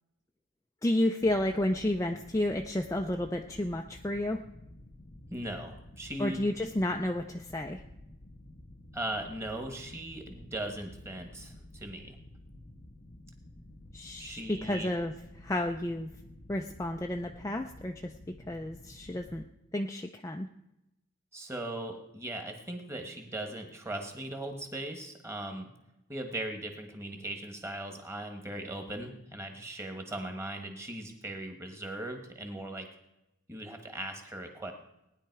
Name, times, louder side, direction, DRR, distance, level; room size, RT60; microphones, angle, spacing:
voice 1, 0.8-4.4 6.2-7.8 13.9-16.1 16.5-19.4 19.7-20.5, left 1 dB, 15° left, 3 dB, 0.4 m, -31 dB
sound 1, 1.2-19.5, left 1 dB, 45° left, 0.9 m, -52 dB
voice 2, 5.3-6.6 8.9-12.2 14.2-14.9 21.3-25.7 26.1-32.9 33.5-34.7, right 1 dB, 10° right, 4 dB, 1.5 m, -39 dB
18.5 x 10.0 x 4.7 m, 0.91 s
head